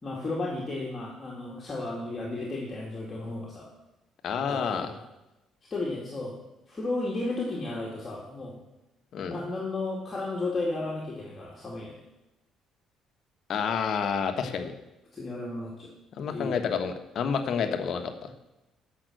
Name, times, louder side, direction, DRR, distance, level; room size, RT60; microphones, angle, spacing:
voice 1, 0.0-3.7 4.5-5.0 5.7-6.4 6.7-8.6 9.3-11.9 15.1-15.9 16.3-16.6, left 2 dB, 25° left, -4 dB, 2.1 m, -33 dB
voice 2, 4.2-4.9 9.1-9.4 13.5-14.7 16.1-18.3, left 6 dB, 55° left, 7 dB, 1.2 m, -29 dB
13.0 x 5.8 x 7.7 m, 0.99 s
cardioid pair, 140°, 0 cm